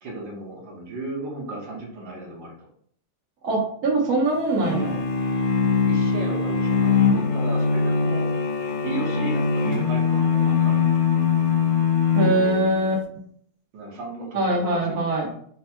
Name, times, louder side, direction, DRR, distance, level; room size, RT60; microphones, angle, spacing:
voice 1, 0.0-2.7 5.9-10.9 13.7-15.3, right 2 dB, 55° right, -3 dB, 1.3 m, -35 dB
voice 2, 3.4-5.0 12.1-13.0 14.3-15.3, right 2 dB, 85° right, -3 dB, 0.8 m, -22 dB
sound 1, 4.6-12.9, left 5 dB, 85° left, 1.1 m, -22 dB
4.9 x 2.2 x 4.3 m, 0.64 s
omnidirectional pair, 3.4 m